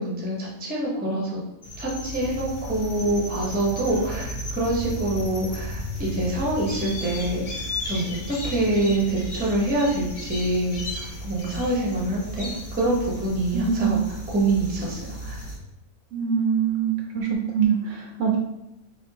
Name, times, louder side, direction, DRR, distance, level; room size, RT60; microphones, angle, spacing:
voice 1, 0.0-1.4 1.8-7.4 7.8-15.4, right 1 dB, 10° right, -3 dB, 0.5 m, -26 dB
sound 1, 1.6-15.6, equal, 45° left, 1.0 m, -34 dB
voice 2, 13.5-14.0 16.1-18.4, right 7 dB, 70° right, 0 dB, 0.8 m, -24 dB
4.2 x 3.1 x 2.8 m, 0.90 s
omnidirectional pair, 1.6 m